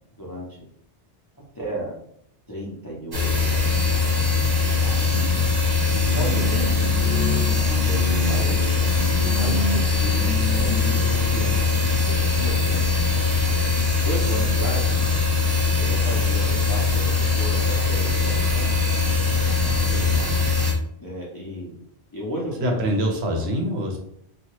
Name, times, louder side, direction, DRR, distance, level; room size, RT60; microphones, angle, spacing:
voice 1, 0.2-0.7 1.5-1.9 2.5-3.9 4.8-4.9 6.1-6.8 7.8-8.6 9.2-12.9 14.0-14.8 15.8-18.7 21.0-21.8 22.1-22.8, equal, 30° left, -5 dB, 0.4 m, -33 dB
sound 1, 3.1-20.7, left 4 dB, 30° right, 0.4 m, -21 dB
voice 2, 5.1-5.5 19.6-20.3 22.6-24.0, equal, 70° right, 2 dB, 0.8 m, -26 dB
sound 2, 5.9-11.8, left 2 dB, 75° left, 0.8 m, -30 dB
2.8 x 2.3 x 2.9 m, 0.70 s
omnidirectional pair, 1.1 m